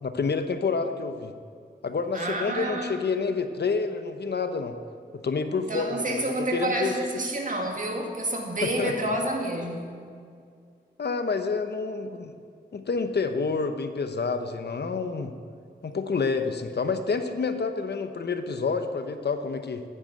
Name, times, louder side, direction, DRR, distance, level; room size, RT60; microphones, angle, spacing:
voice 1, 0.0-1.3 1.8-4.7 5.1-6.9 8.6-9.1 11.0-12.3 12.7-15.3 15.8-19.8, left 4 dB, 70° left, 0.9 m, -28 dB
voice 2, 2.1-3.0 5.6-9.9, right 1 dB, 50° right, 2.1 m, -29 dB
9.5 x 9.3 x 8.2 m
wide cardioid pair, 70°, 18 cm